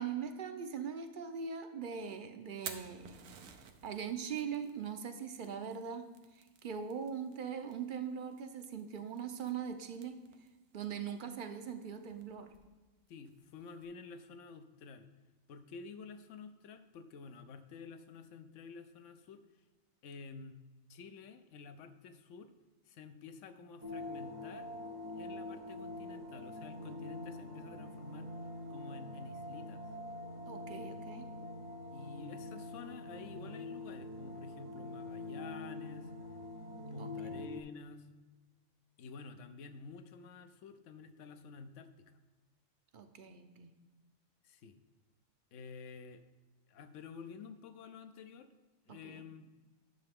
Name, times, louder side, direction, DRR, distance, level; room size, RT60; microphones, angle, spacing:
voice 1, 0.0-3.2 3.8-6.1 6.4-10.2 10.7-12.5 30.5-31.3 37.0-37.3 42.9-43.7 49.0-49.2, right 7 dB, 50° right, 7 dB, 0.7 m, -41 dB
Fire, 2.4-13.8, right 7 dB, 90° right, 1.1 m, -55 dB
voice 2, 13.1-15.1 15.5-19.5 20.0-20.6 20.9-22.5 22.9-24.7 25.1-28.3 28.7-29.8 31.9-36.1 36.9-38.1 39.0-42.1 44.4-44.8 45.5-46.2 46.7-48.5 48.9-49.5, left 5 dB, 70° left, 10 dB, 1.0 m, -50 dB
sound 1, 23.8-37.6, left 2 dB, 70° right, 1.6 m, -45 dB
10.5 x 6.7 x 3.5 m, 1.2 s
omnidirectional pair, 1.4 m